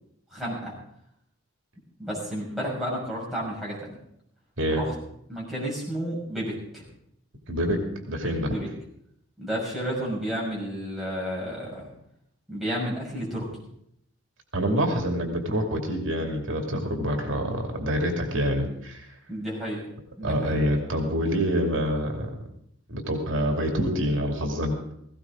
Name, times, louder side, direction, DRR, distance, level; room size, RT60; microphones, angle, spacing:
voice 1, 0.3-0.7 2.0-3.9 4.8-4.9 5.3-6.9 8.4-8.7 9.4-11.9 12.5-13.5 19.3-19.8 20.2-20.5, equal, ahead, -6 dB, 6.2 m, -31 dB
voice 2, 7.5-7.8 8.1-8.5 14.5-19.1 20.2-22.3 22.9-24.7, equal, 75° right, 2 dB, 2.5 m, -26 dB
18.0 x 16.0 x 3.7 m, 0.73 s
head